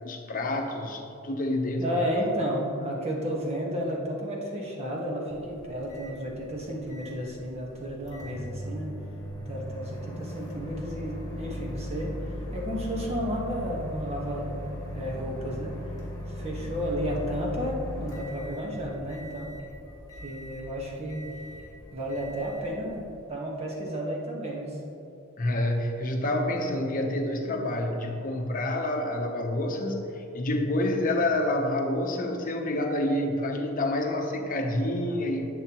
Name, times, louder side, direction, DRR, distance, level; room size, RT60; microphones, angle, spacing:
voice 1, 0.0-2.1 25.4-35.5, left 1 dB, 40° left, 3 dB, 0.9 m, -28 dB
voice 2, 1.8-9.0 9.4-12.2 12.5-14.6 14.9-15.7 16.4-19.5 20.2-21.3 21.9-24.8, equal, 30° right, -2 dB, 1.5 m, -32 dB
Microwave oven, 5.3-23.3, equal, 20° left, 1.7 m, -39 dB
11.0 x 8.2 x 3.0 m, 2.8 s
head